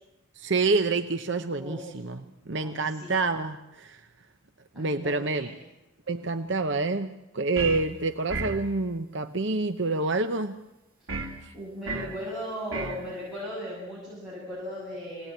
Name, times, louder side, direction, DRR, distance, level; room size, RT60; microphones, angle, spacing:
voice 1, 0.4-2.2 2.5-4.1 4.8-5.5 6.1-10.6 11.4-11.5, right 3 dB, 55° right, 7 dB, 0.9 m, -27 dB
voice 2, 2.6-3.1 4.7-5.5 11.0-11.3 11.5-15.3, equal, 5° right, -8 dB, 7.3 m, -37 dB
sound 1, 7.6-7.9 8.3-8.7 11.1-11.4 11.9-12.2 12.7-13.0, right 3 dB, 75° right, 2.9 m, -32 dB
24.5 x 18.5 x 9.2 m, 0.96 s
head